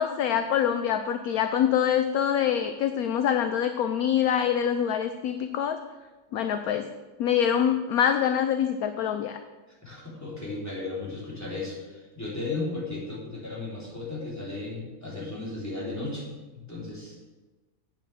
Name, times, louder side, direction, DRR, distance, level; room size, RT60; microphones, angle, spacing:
voice 1, 0.0-5.8 6.3-6.9 7.2-9.4, left 9 dB, 70° left, 9 dB, 1.0 m, -25 dB
voice 2, 9.8-16.4 16.7-17.2, left 2 dB, 10° left, -6 dB, 3.4 m, -35 dB
8.6 x 6.6 x 7.5 m, 1.2 s
omnidirectional pair, 1.8 m